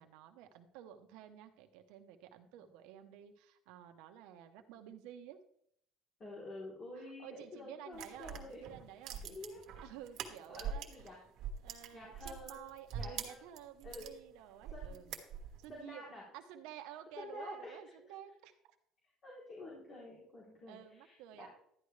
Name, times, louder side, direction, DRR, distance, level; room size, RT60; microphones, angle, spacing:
voice 1, 0.0-5.4 7.0-9.4 9.8-10.9 11.6-15.1 15.6-18.5 20.7-21.5, right 10 dB, 75° right, 6 dB, 1.0 m, -52 dB
voice 2, 6.2-8.6 9.0-9.6 10.5-11.2 11.9-13.4 13.8-14.1 14.7-15.1 15.7-16.2 17.2-17.8 19.2-21.5, left 2 dB, 25° left, -5 dB, 3.3 m, -49 dB
sound 1, 7.9-11.1 11.4-14.1 14.6-15.7, right 7 dB, 50° right, 1.5 m, -44 dB
12.0 x 10.5 x 3.3 m, 0.70 s
cardioid pair, 170°, 0 cm